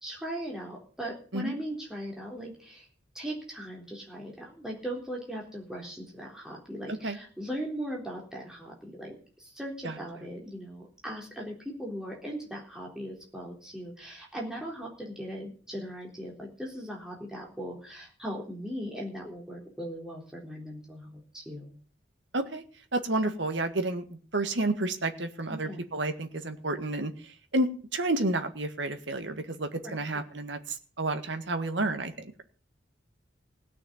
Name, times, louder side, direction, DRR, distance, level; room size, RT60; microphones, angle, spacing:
voice 1, 0.0-2.9 3.1-21.7 25.5-25.8 29.8-30.0, equal, 5° right, -3 dB, 3.9 m, -39 dB
voice 2, 22.9-32.4, right 2 dB, 70° right, 7 dB, 1.8 m, -31 dB
17.0 x 6.5 x 9.3 m, 0.41 s
head